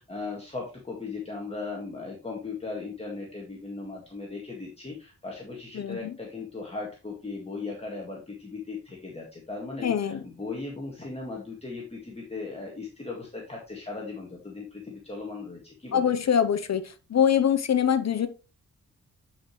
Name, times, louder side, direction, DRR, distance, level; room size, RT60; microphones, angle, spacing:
voice 1, 0.0-16.1, left 3 dB, 20° left, -2 dB, 1.9 m, -37 dB
voice 2, 5.7-6.1 9.8-10.2 15.9-16.8 17.1-18.3, left 8 dB, 60° left, 10 dB, 0.8 m, -23 dB
9.9 x 5.2 x 3.1 m, 0.31 s
wide cardioid pair, 110°, 30 cm